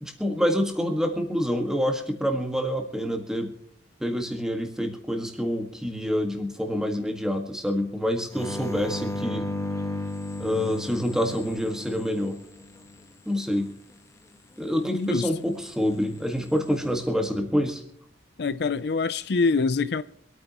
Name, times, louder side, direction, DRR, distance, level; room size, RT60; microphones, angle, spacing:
voice 1, 0.0-3.5 4.0-9.5 10.4-12.4 13.3-13.7 14.6-17.8, equal, 5° right, 1.7 m, -27 dB
sound 1, 8.3-12.9 16.2-16.8, left 1 dB, 15° left, 1.1 m, -34 dB
voice 2, 14.9-15.3 18.4-20.0, left 4 dB, 55° left, 0.5 m, -25 dB
26.0 x 9.1 x 3.0 m
head